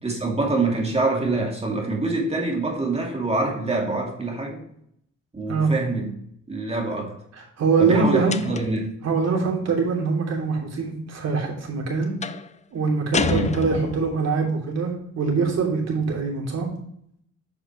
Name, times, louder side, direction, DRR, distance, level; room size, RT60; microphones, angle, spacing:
voice 1, 0.0-4.6 5.3-6.1 6.5-7.2 7.8-8.8 13.3-13.6, right 3 dB, 20° right, 2.5 m, -25 dB
voice 2, 7.3-8.6 9.0-12.2 12.7-16.7, right 4 dB, 55° right, 3.2 m, -23 dB
sound 1, 8.3-8.9 12.2-12.5 13.1-14.2, left 6 dB, 25° left, 0.5 m, -28 dB
8.0 x 6.6 x 3.0 m
cardioid pair, 90°, 30 cm